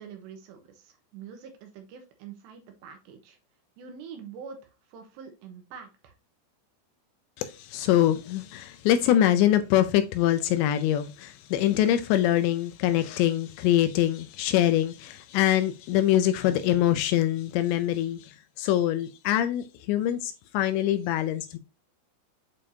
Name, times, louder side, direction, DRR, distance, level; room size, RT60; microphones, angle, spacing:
voice 1, 0.0-3.4 3.8-6.1, right 6 dB, 75° right, 3.1 m, -45 dB
voice 2, 7.4-21.6, left 12 dB, 80° left, 2.7 m, -24 dB
8.6 x 5.1 x 2.7 m
omnidirectional pair, 5.4 m